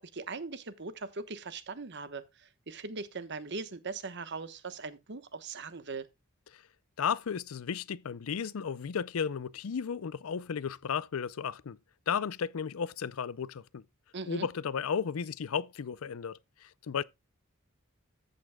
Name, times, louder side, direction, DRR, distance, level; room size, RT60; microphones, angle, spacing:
voice 1, 0.1-6.1 14.1-14.5, right 4 dB, 55° right, 1.1 m, -40 dB
voice 2, 7.0-11.8 12.1-13.8 14.3-17.0, left 7 dB, 80° left, 0.5 m, -34 dB
14.0 x 8.3 x 2.2 m
head